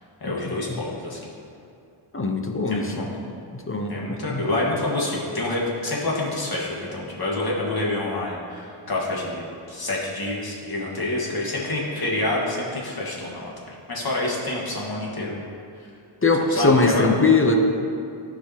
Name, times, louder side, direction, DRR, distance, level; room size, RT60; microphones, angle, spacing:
voice 1, 0.2-1.2 2.7-3.1 3.9-15.4 16.5-17.0, left 2 dB, 50° left, -4 dB, 1.7 m, -27 dB
voice 2, 2.1-2.9 3.5-4.4 16.2-17.6, left 3 dB, 25° left, 3 dB, 0.8 m, -21 dB
13.0 x 4.9 x 2.9 m, 2.5 s
cardioid pair, 70°, 48 cm